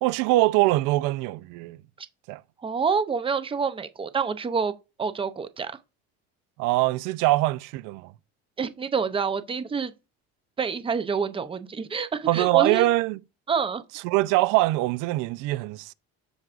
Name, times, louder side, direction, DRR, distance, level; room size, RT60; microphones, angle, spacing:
voice 1, 0.0-1.8 2.3-2.4 6.6-8.1 12.3-13.2 14.0-15.9, right 18 dB, 75° right, 0.5 m, -23 dB
voice 2, 2.6-4.7 5.0-5.7 8.6-9.9 10.6-12.9 13.5-13.8, right 6 dB, 15° right, 0.6 m, -27 dB
13.5 x 4.7 x 2.5 m
cardioid pair, 125°, 32 cm